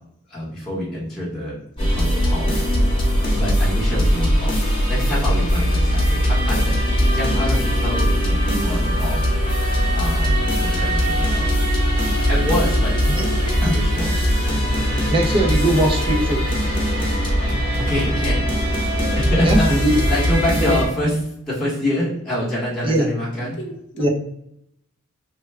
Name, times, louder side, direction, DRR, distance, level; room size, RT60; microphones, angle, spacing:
voice 1, 0.3-1.6 1.9-2.5 3.3-4.6 4.9-9.2 9.5-11.6 12.3-12.9 13.6-14.1 17.8-18.4 19.2-19.8 20.1-23.6, left 1 dB, ahead, -9 dB, 1.1 m, -26 dB
sound 1, 1.8-20.8, equal, 25° left, 1.1 m, -20 dB
voice 2, 14.9-16.4 19.4-19.9 20.6-20.7 22.8-23.1 24.0-24.1, right 1 dB, 25° right, 1 dB, 0.6 m, -20 dB
voice 3, 23.4-24.1, left 1 dB, 55° left, 2 dB, 0.7 m, -36 dB
3.3 x 2.2 x 3.2 m, 0.77 s
head